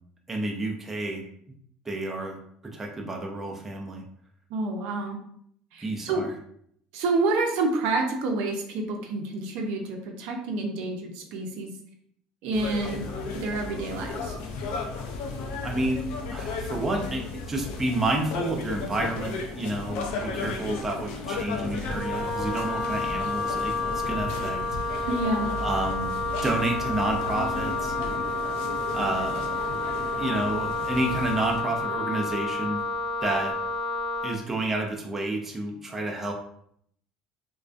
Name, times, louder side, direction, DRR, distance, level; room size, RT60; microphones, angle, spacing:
voice 1, 0.3-1.2 1.9-2.4 2.7-4.0 5.8-6.3 15.6-16.0 16.3-23.7 24.1-24.6 24.8-25.1 25.6-26.1 26.4-27.9 28.9-29.5 30.2-32.8 33.2-33.5 34.2-36.3, right 2 dB, 15° right, 0 dB, 0.3 m, -30 dB
voice 2, 4.5-5.2 5.7-6.2 6.9-11.7 12.4-13.0 13.3-14.3 25.1-25.5, right 3 dB, 75° right, 2 dB, 0.5 m, -28 dB
sound 1, 12.5-31.6, left 3 dB, 70° left, 0.4 m, -35 dB
Wind instrument woodwind instrument, 21.9-34.4, left 3 dB, 25° left, 0.8 m, -30 dB
2.3 x 2.1 x 2.4 m, 0.67 s
cardioid pair, 145°, 2 cm